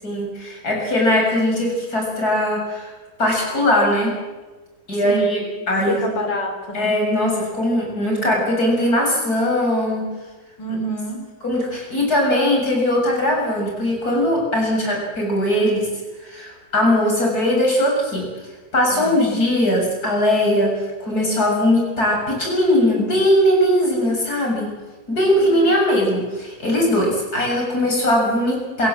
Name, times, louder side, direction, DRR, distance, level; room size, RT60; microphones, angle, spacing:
voice 1, 0.0-2.9 3.2-4.1 4.9-5.4 5.7-6.1 6.7-10.1 11.4-15.9 16.2-18.3 18.7-24.7 25.1-28.9, left 1 dB, 55° left, -1 dB, 7.6 m, -20 dB
voice 2, 5.0-5.4 5.7-6.9 10.6-11.2 18.9-19.2 25.4-25.7, equal, 80° left, 4 dB, 4.7 m, -28 dB
28.0 x 16.5 x 7.6 m, 1.2 s
omnidirectional pair, 1.9 m